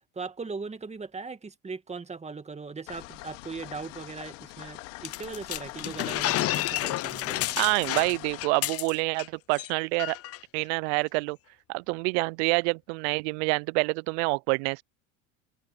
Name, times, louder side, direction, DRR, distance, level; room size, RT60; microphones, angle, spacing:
voice 1, 0.1-7.6, right 4 dB, 15° right, 2.2 m, -39 dB
sound 1, 2.9-8.4, left 23 dB, 75° left, 2.5 m, -43 dB
sound 2, 5.0-9.3 9.5-9.7 10.0-10.4, left 15 dB, 40° left, 0.7 m, -30 dB
voice 2, 7.6-10.2 10.5-11.4 11.7-14.8, right 32 dB, 65° right, 0.5 m, -27 dB
hypercardioid pair, 90°, 37 cm